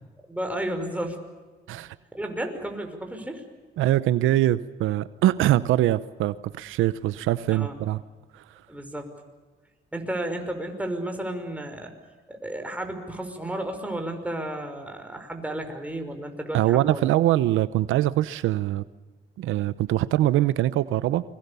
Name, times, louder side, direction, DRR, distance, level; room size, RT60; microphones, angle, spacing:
voice 1, 0.3-1.2 1.7-1.8 2.1-3.4 7.5-7.8 8.7-9.1 9.9-11.9 12.3-17.0, right 1 dB, 5° right, 4 dB, 5.6 m, -32 dB
voice 2, 3.8-8.0 8.3-8.4 16.5-18.8 19.4-21.2, right 14 dB, 90° right, 15 dB, 0.9 m, -23 dB
29.5 x 23.0 x 7.0 m, 1.3 s
cardioid pair, 90°, 20 cm